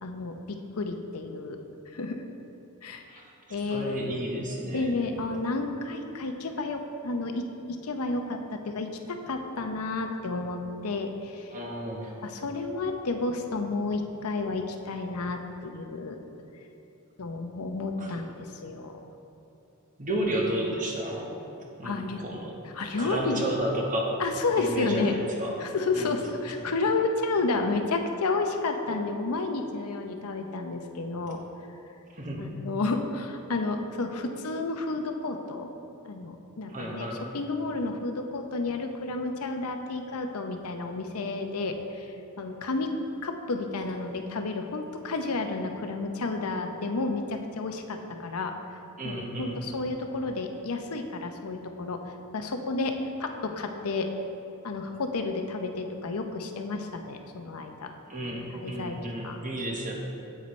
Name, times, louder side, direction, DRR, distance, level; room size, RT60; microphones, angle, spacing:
voice 1, 0.0-1.6 1.9-2.2 2.8-3.0 3.5-4.0 4.7-11.5 12.2-16.2 17.2-19.0 21.8-22.2 22.6-23.5 24.2-25.1 25.6-31.4 32.4-35.7 36.0-37.1 37.3-42.9 43.2-48.5 49.0-52.0 52.3-54.1 54.6-57.9 58.5-59.0 59.2-59.4, left 3 dB, 80° left, 5 dB, 0.7 m, -31 dB
voice 2, 3.7-5.1 11.5-12.2 18.0-18.2 20.0-21.3 21.8-22.5 23.0-24.1 24.6-25.6 25.9-26.2 32.1-32.4 36.7-37.2 49.0-49.6 58.1-59.9, right 1 dB, 35° right, -1 dB, 1.1 m, -32 dB
9.4 x 8.4 x 3.2 m, 2.8 s
head